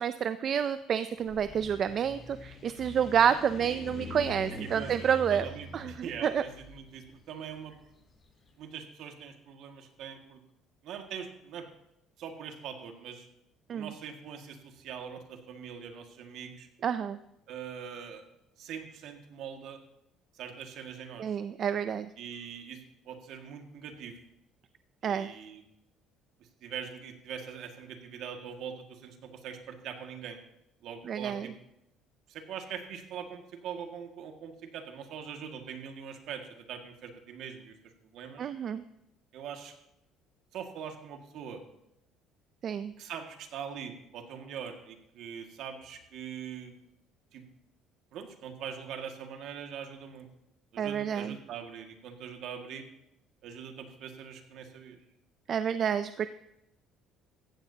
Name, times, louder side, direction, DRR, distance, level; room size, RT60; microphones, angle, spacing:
voice 1, 0.0-6.4 13.7-13.9 16.8-17.2 21.2-22.1 25.0-25.3 31.0-31.5 38.4-38.8 42.6-42.9 50.8-51.4 55.5-56.3, right 8 dB, 50° right, 12 dB, 0.5 m, -29 dB
sound 1, 1.2-8.3, left 2 dB, 35° left, 3.5 m, -45 dB
voice 2, 4.6-4.9 5.3-7.7 8.6-10.4 10.8-11.7 12.2-13.3 13.7-16.7 17.5-18.2 18.6-19.8 20.3-21.3 22.2-24.2 25.0-25.6 26.6-30.4 30.8-31.5 32.3-38.4 39.3-39.7 40.5-41.6 43.0-46.8 47.3-47.4 48.1-50.3 50.7-52.9 53.4-55.0, right 7 dB, 70° right, 4 dB, 2.0 m, -42 dB
15.5 x 15.0 x 2.9 m, 0.84 s
cardioid pair, 100°, 0 cm